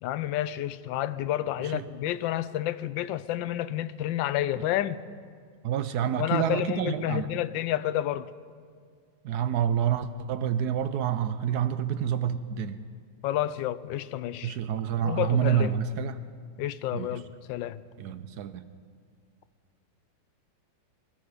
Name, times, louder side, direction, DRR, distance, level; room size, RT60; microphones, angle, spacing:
voice 1, 0.0-5.0 6.2-8.3 13.2-14.6 15.0-15.8 16.6-17.2 17.5-17.8, left 13 dB, 90° left, 14 dB, 1.3 m, -30 dB
voice 2, 5.6-7.3 9.2-12.8 14.4-16.2 16.9-17.2 18.0-18.7, right 9 dB, 70° right, 12 dB, 1.0 m, -28 dB
21.5 x 12.5 x 5.0 m, 2.1 s
omnidirectional pair, 2.0 m